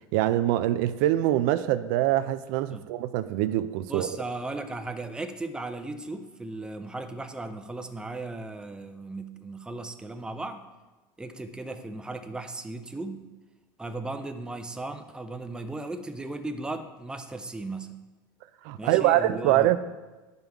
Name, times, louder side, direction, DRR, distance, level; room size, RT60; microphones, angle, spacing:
voice 1, 0.1-4.1 18.6-19.8, right 14 dB, 70° right, 13 dB, 0.4 m, -24 dB
voice 2, 3.9-10.7 11.2-13.2 13.8-18.0 18.8-19.8, right 2 dB, 10° right, 8 dB, 0.5 m, -36 dB
10.0 x 5.4 x 3.5 m, 1.2 s
supercardioid pair, 115°, 11 cm